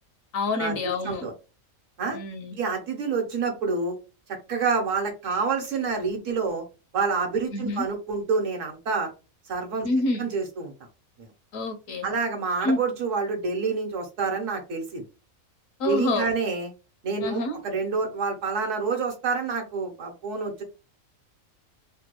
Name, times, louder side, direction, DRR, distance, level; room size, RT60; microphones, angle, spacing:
voice 1, 0.3-1.3 2.1-2.5 7.5-7.8 9.8-10.3 11.5-12.1 12.6-12.8 15.8-16.3 17.2-17.6, left 2 dB, 75° left, 7 dB, 1.0 m, -27 dB
voice 2, 2.5-4.0 4.5-6.6 6.9-9.1 9.5-9.9 10.2-10.7 11.2-11.3 12.0-15.0 15.8-16.7 17.0-20.6, right 4 dB, 70° right, 3 dB, 1.2 m, -27 dB
3.2 x 2.2 x 2.9 m, 0.31 s
omnidirectional pair, 1.4 m